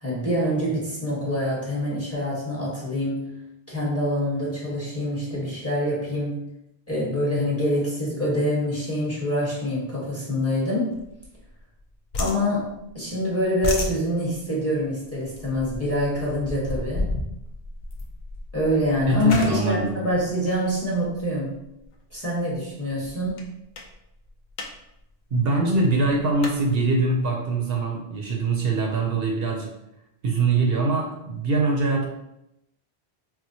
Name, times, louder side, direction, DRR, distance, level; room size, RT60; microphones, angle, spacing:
voice 1, 0.0-3.3 3.7-6.4 6.9-10.9 12.2-12.7 12.9-17.1 18.5-21.6 22.1-23.3, left 1 dB, 15° left, -7 dB, 1.0 m, -25 dB
sound 1, 10.9-11.8 12.1-13.1 13.4-21.2 21.8-22.1 22.5-22.6 22.9-23.4 23.7-23.9 24.3-24.7 25.0-25.1 25.3-26.6, left 2 dB, 55° left, 0.5 m, -33 dB
voice 2, 19.1-20.1 25.3-29.7 30.2-32.1, right 3 dB, 70° right, 0 dB, 0.7 m, -23 dB
4.3 x 2.0 x 2.6 m, 0.84 s
omnidirectional pair, 1.1 m